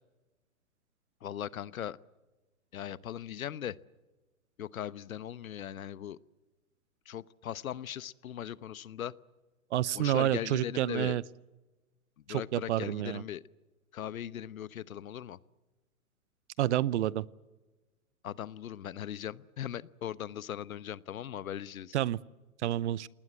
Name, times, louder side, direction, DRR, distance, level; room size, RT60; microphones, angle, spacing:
voice 1, 1.2-2.0 2.7-3.8 4.6-6.2 7.1-9.1 9.9-11.2 12.3-13.4 13.9-15.4 18.2-22.0, left 10 dB, 70° left, 19 dB, 1.0 m, -39 dB
voice 2, 9.7-11.2 12.3-13.2 16.6-17.2 21.9-22.2 22.6-23.1, right 13 dB, 55° right, 22 dB, 0.8 m, -29 dB
28.0 x 19.5 x 7.9 m, 1.2 s
hypercardioid pair, 125°, 43 cm